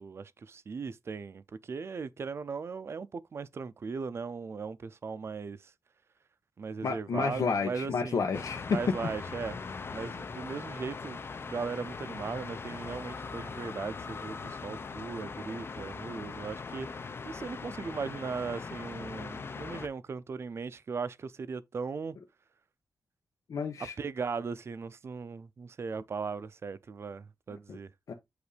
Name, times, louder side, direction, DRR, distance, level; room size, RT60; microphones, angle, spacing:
voice 1, 0.0-5.7 6.6-8.2 8.7-9.6 9.9-22.2 24.0-27.9, right 5 dB, 50° right, 0.5 m, -38 dB
voice 2, 6.8-8.8 23.5-23.9 27.7-27.8 28.1-28.2, left 5 dB, 85° left, 1.0 m, -30 dB
sound 1, 8.3-19.9, left 4 dB, 45° left, 0.6 m, -40 dB
8.0 x 2.7 x 4.9 m
wide cardioid pair, 175°, 6 cm